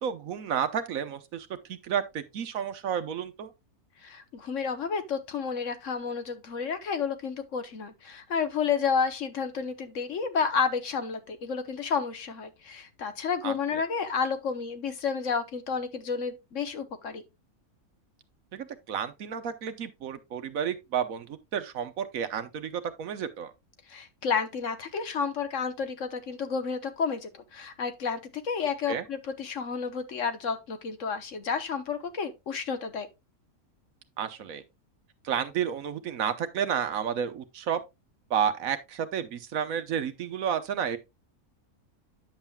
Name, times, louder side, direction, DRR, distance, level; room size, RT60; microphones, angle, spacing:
voice 1, 0.0-3.5 13.4-13.8 18.5-23.5 28.9-29.0 34.2-34.6 35.2-37.8 38.3-41.0, right 8 dB, 70° right, 1.3 m, -31 dB
voice 2, 4.0-17.2 23.9-28.2 28.4-33.1, left 6 dB, 60° left, 1.3 m, -31 dB
9.8 x 7.4 x 2.3 m
omnidirectional pair, 1.5 m